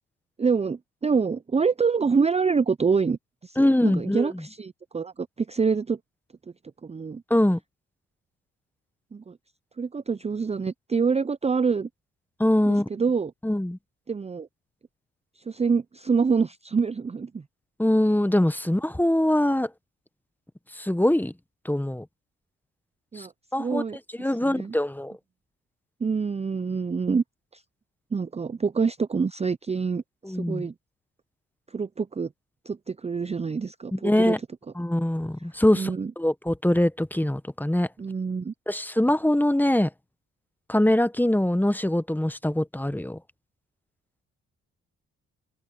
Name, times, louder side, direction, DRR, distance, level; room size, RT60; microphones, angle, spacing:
voice 1, 0.4-6.0 6.8-7.2 9.1-9.4 9.8-11.9 12.7-13.3 14.1-14.5 15.5-17.4 23.1-23.3 23.6-24.0 24.5-24.7 26.0-27.2 27.5-27.6 28.1-30.7 31.7-32.3 32.7-34.4 35.7-36.1 38.0-38.5, right 5 dB, 20° right, 0.6 m, -26 dB
voice 2, 3.6-4.4 7.3-7.6 12.4-12.9 13.4-13.8 17.8-19.7 20.7-21.3 21.6-22.1 23.2-23.3 23.5-23.8 24.1-25.2 30.2-30.7 33.9-34.4 34.7-37.9 38.7-39.9 40.7-43.2, left 1 dB, 5° left, 1.2 m, -23 dB
open air
supercardioid pair, 55°, 30 cm